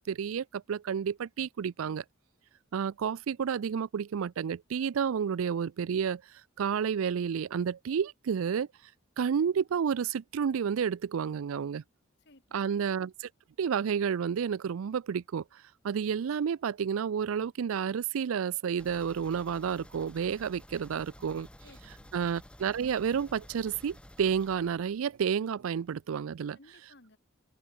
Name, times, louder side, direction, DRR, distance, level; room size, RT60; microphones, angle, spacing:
voice 1, 0.0-2.0 2.7-6.2 6.6-8.7 9.2-11.8 12.5-13.3 13.6-15.4 15.8-21.5 22.1-26.6, right 7 dB, 80° right, 0.4 m, -30 dB
voice 2, 12.2-12.8 21.6-22.1 26.5-27.2, left 2 dB, 55° left, 2.1 m, -59 dB
sound 1, 18.8-25.4 25.7-25.8 26.2-26.3, equal, 5° left, 1.1 m, -52 dB
head